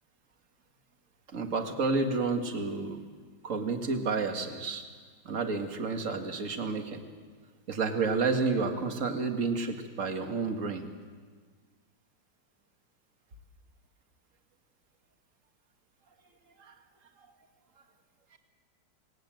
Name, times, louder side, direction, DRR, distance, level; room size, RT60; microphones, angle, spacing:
voice 1, 1.3-3.0 3.4-4.8 5.2-7.0 7.7-10.9 16.6-16.8 18.3-18.4, right 4 dB, 40° right, 5 dB, 2.2 m, -30 dB
27.0 x 20.0 x 7.8 m, 1.5 s
omnidirectional pair, 2.1 m